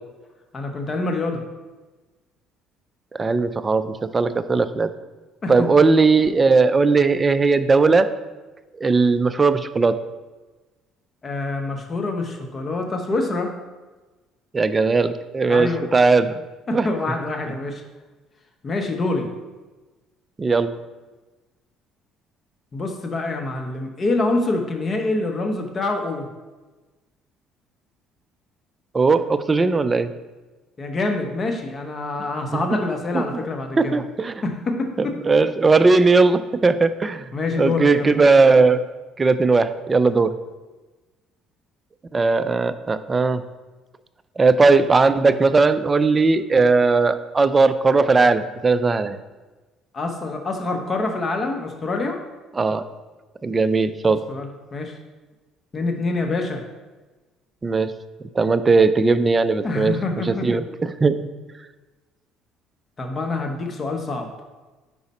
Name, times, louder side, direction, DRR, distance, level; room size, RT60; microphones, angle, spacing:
voice 1, 0.5-1.4 5.4-5.7 11.2-13.5 15.5-15.8 16.2-16.3 16.7-17.8 18.6-19.3 22.7-26.3 30.8-34.0 34.4-35.1 37.3-38.1 49.9-52.2 54.3-54.9 55.7-56.6 59.6-60.5 63.0-64.3, left 2 dB, 35° left, 4 dB, 0.9 m, -26 dB
voice 2, 3.1-4.9 5.5-8.1 8.8-10.0 14.5-16.4 16.7-16.9 20.4-20.7 28.9-30.1 33.1-33.2 33.8-34.4 35.0-37.3 37.6-38.8 39.2-40.3 42.1-43.4 44.4-49.2 52.6-52.9 53.4-54.2 57.6-57.9 58.4-59.9 60.3-61.2, right 4 dB, 25° right, 13 dB, 0.3 m, -18 dB
5.3 x 4.8 x 4.1 m, 1.2 s
cardioid pair, 95°, 0 cm